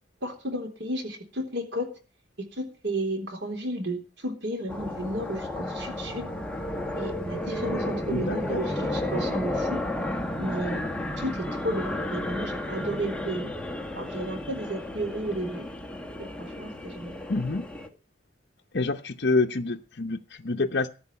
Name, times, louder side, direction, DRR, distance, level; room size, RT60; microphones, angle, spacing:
voice 1, 0.2-1.9 2.6-6.3 7.0-9.8 10.4-10.9 11.2-13.5 14.0-15.7 16.2-17.2, right 1 dB, 75° right, 3.7 m, -33 dB
sound 1, 4.7-17.9, left 1 dB, 5° left, 1.4 m, -32 dB
voice 2, 8.1-8.6 17.3-17.6 18.7-20.9, left 3 dB, 60° left, 0.7 m, -27 dB
14.0 x 6.3 x 9.5 m
head